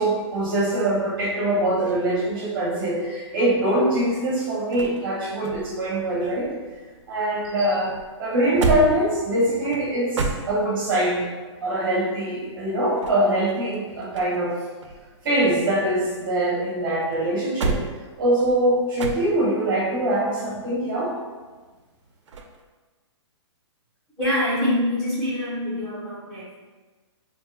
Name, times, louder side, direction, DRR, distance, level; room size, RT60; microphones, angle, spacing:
voice 1, 0.0-6.5 7.1-7.9 8.2-11.3 11.6-14.6 15.2-17.8 18.2-21.2, right 1 dB, 45° right, -4 dB, 0.8 m, -23 dB
sound 1, 3.9-7.1 7.4-11.0 12.7-14.5 14.8-16.6 17.0-19.7 22.3-22.6, right 3 dB, 75° right, 0.5 m, -32 dB
voice 2, 24.2-26.6, left 1 dB, 5° left, -12 dB, 1.4 m, -25 dB
4.3 x 2.6 x 2.3 m, 1.3 s
hypercardioid pair, 155°, 15 cm